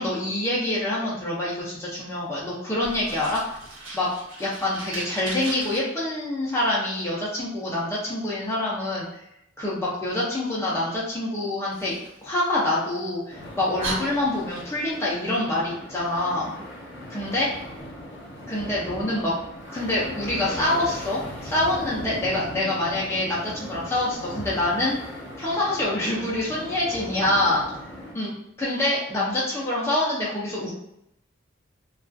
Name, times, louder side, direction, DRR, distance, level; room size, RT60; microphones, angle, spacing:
voice 1, 0.0-3.4 3.9-4.1 4.4-9.1 9.6-11.9 12.2-16.6 17.1-17.5 18.5-19.3 19.7-25.0 25.4-27.6 28.1-30.7, left 1 dB, 15° left, -7 dB, 0.5 m, -26 dB
Fire, 2.8-5.8 11.7-12.9 13.4-13.5 13.8-15.0, right 2 dB, 85° right, 1.1 m, -37 dB
sound 1, 13.3-28.1, left 1 dB, 60° left, 0.6 m, -38 dB
2.3 x 2.3 x 2.4 m, 0.80 s
head